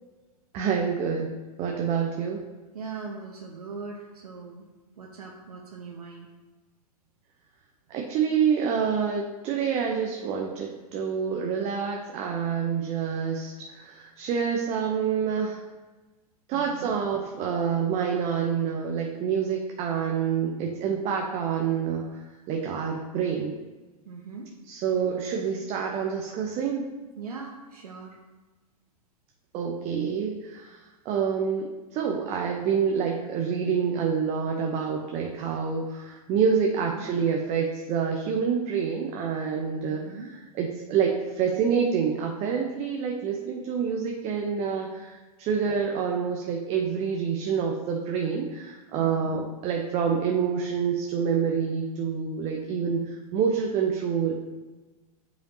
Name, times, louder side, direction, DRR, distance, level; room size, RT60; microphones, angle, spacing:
voice 1, 0.5-1.3 1.6-2.4 7.9-15.6 16.5-22.1 22.5-23.5 24.7-26.8 29.5-30.8 31.1-40.0 40.6-54.4, right 6 dB, 30° right, 1 dB, 0.8 m, -27 dB
voice 2, 2.7-4.7 5.0-6.3 16.5-16.9 24.1-24.5 27.2-28.2 36.9-37.1 39.9-40.3 49.0-49.4, right 4 dB, 70° right, -1 dB, 0.9 m, -40 dB
8.8 x 5.1 x 2.8 m, 1.2 s
figure-of-eight pair, 105°, 20 cm